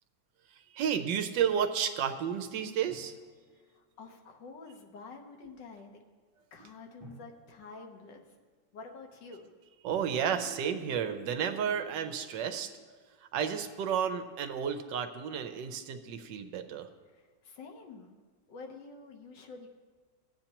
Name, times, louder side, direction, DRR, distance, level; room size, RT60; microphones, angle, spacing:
voice 1, 0.5-3.2 9.8-12.8 13.2-16.9, right 8 dB, 85° right, 7 dB, 1.4 m, -32 dB
Drum, 2.9-4.4 7.0-9.2, right 1 dB, 5° right, 2.9 m, -58 dB
voice 2, 3.5-6.0 6.5-8.3 8.7-9.5 17.1-18.2 18.5-19.7, left 4 dB, 85° left, 3 dB, 1.7 m, -48 dB
16.5 x 8.5 x 2.9 m, 1.4 s
omnidirectional pair, 1.9 m